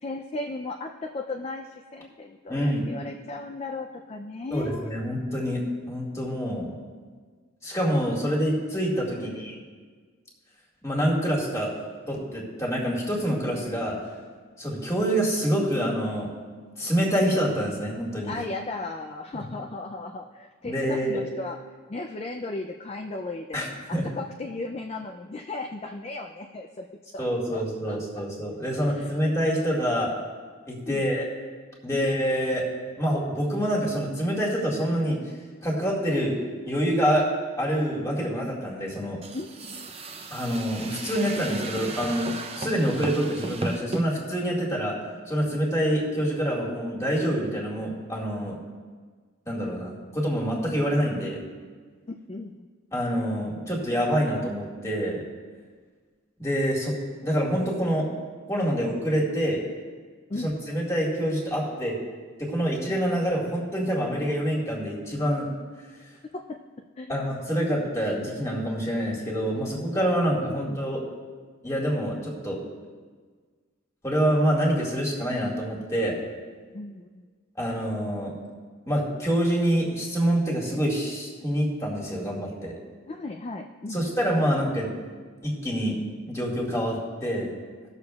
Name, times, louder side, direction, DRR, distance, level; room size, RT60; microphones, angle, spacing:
voice 1, 0.0-4.9 9.1-9.6 18.3-21.6 21.9-23.6 23.9-26.9 27.1-27.3 27.5-28.0 28.8-29.1 30.9-31.0 31.9-32.1 39.3-39.9 52.1-52.7 60.3-60.5 66.5-66.6 67.0-67.2 70.5-70.8 76.7-77.3 83.1-84.0, left 2 dB, 30° left, 3 dB, 0.4 m, -36 dB
voice 2, 2.5-2.9 4.5-6.8 7.6-9.6 10.8-11.7 12.1-14.0 14.6-16.3 16.8-18.4 20.6-21.2 23.5-24.1 27.2-30.2 30.7-31.2 31.8-32.7 33.0-35.2 35.6-39.2 40.3-45.0 45.3-48.6 49.5-51.4 52.9-55.2 56.4-56.9 57.2-58.1 58.5-59.6 60.4-62.0 62.4-65.5 67.1-71.0 71.6-72.6 74.0-76.2 77.6-78.3 78.9-82.7 83.9-84.9 85.4-87.5, equal, 15° left, -4 dB, 1.9 m, -26 dB
sound 1, 39.2-44.1, right 2 dB, 30° right, 0.6 m, -35 dB
19.0 x 6.7 x 2.3 m, 1.5 s
head